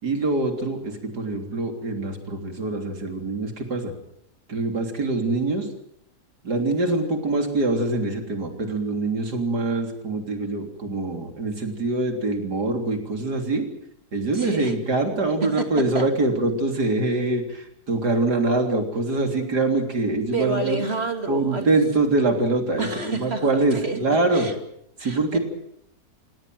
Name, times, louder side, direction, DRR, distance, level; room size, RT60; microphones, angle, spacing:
voice 1, 0.0-3.9 4.5-5.7 6.4-13.7 14.1-20.8 21.3-24.5 25.0-25.4, right 2 dB, 90° right, 4 dB, 4.1 m, -24 dB
voice 2, 14.3-14.7 15.4-15.7 15.9-16.1 20.3-21.8 22.8-24.6 25.0-25.4, right 4 dB, 40° right, 6 dB, 2.7 m, -29 dB
28.0 x 17.5 x 7.9 m, 0.74 s
omnidirectional pair, 1.7 m